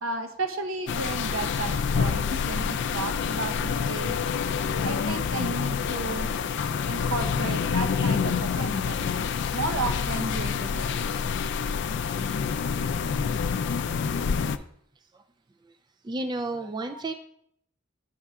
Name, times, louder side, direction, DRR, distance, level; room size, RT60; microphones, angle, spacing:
voice 1, 0.0-4.2 4.8-6.3 6.9-9.1 9.5-11.1 16.8-17.0, right 3 dB, 80° right, 6 dB, 0.8 m, -33 dB
sound 1, 0.9-14.6, left 6 dB, 55° left, 0.3 m, -27 dB
sound 2, 2.3-7.6, left 4 dB, 50° right, 1.1 m, -47 dB
voice 2, 9.0-9.5 10.8-11.0 12.1-12.2 13.8-13.9 14.4-14.7 15.1-15.2 15.6-15.7 16.0-17.1, right 2 dB, 20° right, 6 dB, 0.3 m, -35 dB
6.9 x 5.5 x 3.6 m, 0.70 s
head